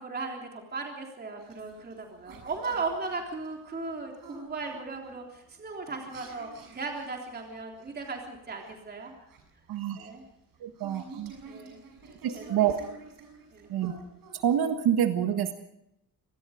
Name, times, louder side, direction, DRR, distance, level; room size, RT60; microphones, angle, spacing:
voice 1, 0.0-9.3 10.0-10.2 11.5-11.8 12.1-12.7 13.5-13.7, right 3 dB, 25° right, 1 dB, 3.5 m, -37 dB
sound 1, 1.4-14.7, right 4 dB, 60° right, 6.7 m, -51 dB
voice 2, 9.7-10.1 10.6-11.3 12.2-12.8 13.7-14.0 14.3-15.5, right 9 dB, 80° right, 8 dB, 1.7 m, -27 dB
26.5 x 19.5 x 5.1 m, 0.82 s
cardioid pair, 175°, 38 cm